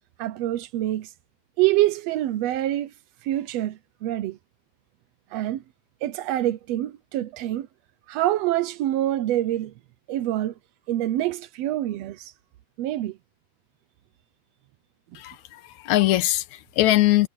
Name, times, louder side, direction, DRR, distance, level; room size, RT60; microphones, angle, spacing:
voice 1, 0.2-1.1 1.6-2.9 3.2-4.4 5.3-5.6 6.0-7.7 8.1-9.7 10.1-10.5 10.9-12.3 12.8-13.2, right 14 dB, 75° right, 1.5 m, -26 dB
voice 2, 15.2-17.3, left 16 dB, 75° left, 2.0 m, -22 dB
omnidirectional pair, 3.7 m